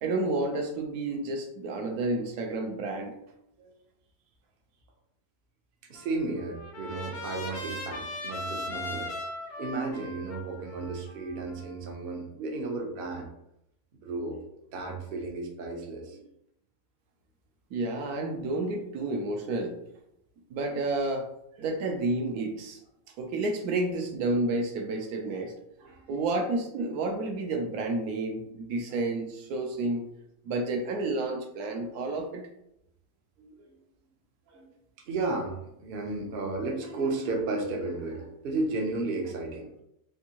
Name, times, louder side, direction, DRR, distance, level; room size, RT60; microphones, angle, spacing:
voice 1, 0.0-3.1 17.7-19.8 20.5-21.3 21.6-22.8 23.2-25.5 26.1-30.1 30.4-32.5, right 2 dB, 75° right, 2 dB, 1.1 m, -30 dB
Trumpet, 5.9-12.1, left 2 dB, 60° left, 0.7 m, -39 dB
voice 2, 5.9-9.2 9.6-13.3 13.9-14.4 14.7-16.2 21.6-21.7 25.8-26.3 28.7-28.8 33.4-33.8 34.5-34.7 35.1-39.8, right 3 dB, 55° right, 1 dB, 0.6 m, -34 dB
3.6 x 2.6 x 2.8 m, 0.79 s
omnidirectional pair, 1.7 m